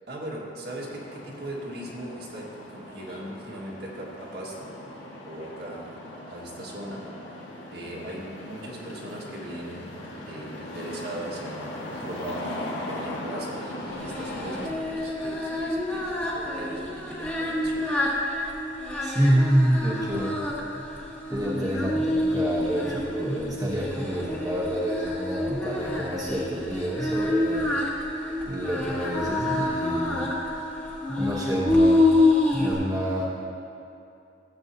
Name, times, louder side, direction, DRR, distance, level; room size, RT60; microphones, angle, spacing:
voice 1, 0.1-4.8 5.2-7.4 7.7-17.9, right 1 dB, 55° right, -3 dB, 1.6 m, -39 dB
sound 1, 0.6-14.7, left 1 dB, 90° left, 1.6 m, -39 dB
Singing, 14.0-32.7, left 2 dB, 10° left, 1.2 m, -27 dB
voice 2, 19.0-20.8 21.3-27.7 28.5-30.3 31.1-32.1 32.5-33.2, equal, 20° right, -6 dB, 1.0 m, -27 dB
14.5 x 8.0 x 2.7 m, 2.7 s
head